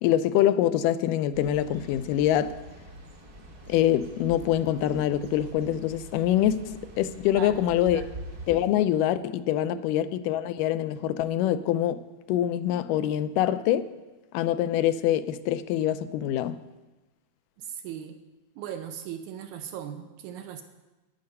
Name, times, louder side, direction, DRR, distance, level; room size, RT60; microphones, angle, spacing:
voice 1, 0.0-2.6 3.7-8.0 8.5-12.0 12.3-13.9 14.3-16.6, left 11 dB, 85° left, 2.1 m, -25 dB
sound 1, 1.3-8.6, right 1 dB, 50° right, 1.0 m, -45 dB
voice 2, 7.3-8.1 9.7-9.9 17.6-18.2 18.6-20.6, right 9 dB, 80° right, 1.9 m, -38 dB
10.5 x 9.5 x 5.4 m
omnidirectional pair, 3.8 m